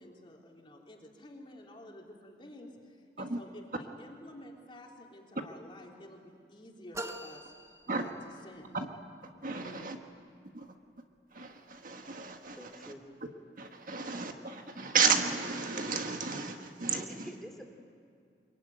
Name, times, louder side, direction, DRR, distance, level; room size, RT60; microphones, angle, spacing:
voice 1, 0.0-8.1 8.4-8.7 9.5-9.9, left 1 dB, 30° left, 3.3 m, -51 dB
sound 1, 6.9-8.6, right 1 dB, 15° right, 0.9 m, -43 dB
voice 2, 9.4-10.0 10.5-10.7 11.3-12.9 13.6-17.1, right 5 dB, 50° right, 1.6 m, -33 dB
voice 3, 12.6-13.0 16.9-17.7, equal, ahead, 2.8 m, -46 dB
24.5 x 22.5 x 9.4 m
head